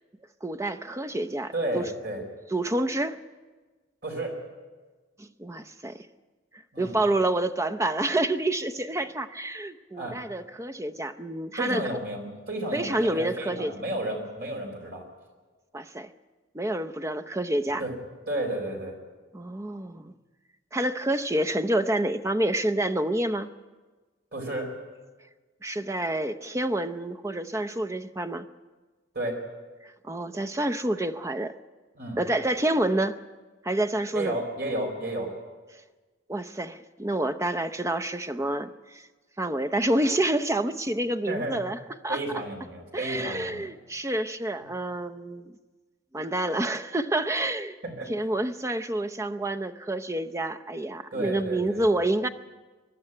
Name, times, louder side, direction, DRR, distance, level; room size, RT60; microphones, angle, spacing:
voice 1, 0.4-1.9 2.5-3.2 5.2-6.1 6.8-11.8 12.7-13.7 15.7-16.1 16.5-17.8 19.3-20.1 20.7-23.5 25.6-28.5 29.8-31.5 32.2-33.2 33.6-34.4 36.3-39.1 39.4-42.2 42.9-45.5 46.1-47.8 48.1-52.3, right 1 dB, 15° right, 9 dB, 0.6 m, -28 dB
voice 2, 1.5-2.2 4.0-4.3 6.7-7.0 9.0-9.1 9.9-10.2 11.6-15.0 17.8-17.9 18.3-19.0 24.3-24.7 29.1-29.4 32.0-32.2 34.1-35.3 41.3-41.6 42.1-43.7 47.8-48.1 51.1-51.8, right 1 dB, 55° right, 1 dB, 4.5 m, -32 dB
22.5 x 11.5 x 9.9 m, 1.3 s
head